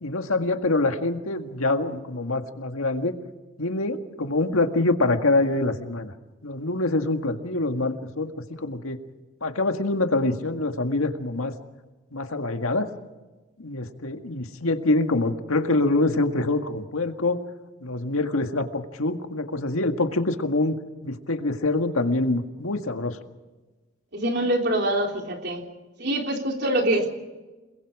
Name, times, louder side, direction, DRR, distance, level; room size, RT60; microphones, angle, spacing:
voice 1, 0.0-3.2 3.6-6.1 6.4-8.3 8.6-9.0 9.4-11.5 12.1-12.9 13.6-17.4 17.8-20.8 21.0-23.2, left 2 dB, 85° left, 6 dB, 1.9 m, -25 dB
voice 2, 24.1-25.6 26.0-27.1, right 1 dB, 50° right, 2 dB, 3.8 m, -24 dB
29.0 x 22.0 x 4.9 m, 1.2 s
head